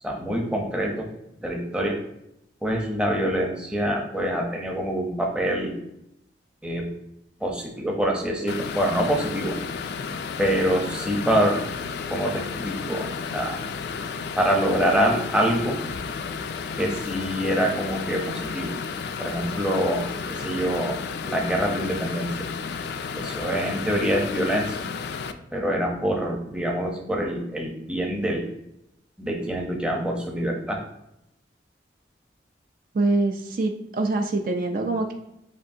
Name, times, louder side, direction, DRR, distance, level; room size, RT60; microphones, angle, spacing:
voice 1, 0.0-1.1 1.4-2.0 2.6-5.7 6.6-6.9 7.4-9.6 10.4-11.6 12.1-13.6 14.4-15.8 16.8-18.8 19.2-22.5 23.1-24.8 25.5-28.5 29.2-30.8, equal, 5° right, 0 dB, 0.7 m, -25 dB
sound 1, 8.5-25.3, left 5 dB, 60° left, 0.3 m, -32 dB
voice 2, 32.9-35.1, right 2 dB, 50° right, 3 dB, 0.4 m, -24 dB
7.4 x 2.5 x 2.7 m, 0.83 s
head